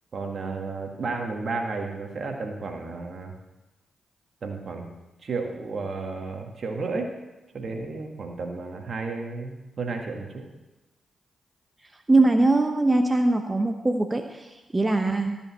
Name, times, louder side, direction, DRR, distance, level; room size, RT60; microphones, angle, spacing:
voice 1, 0.1-3.3 4.4-4.9 5.2-7.1 7.5-10.5, right 3 dB, 60° right, 3 dB, 1.9 m, -32 dB
voice 2, 12.1-15.4, right 2 dB, 25° right, 5 dB, 1.0 m, -22 dB
14.0 x 5.5 x 7.4 m, 1.1 s
hypercardioid pair, 40°, 0 cm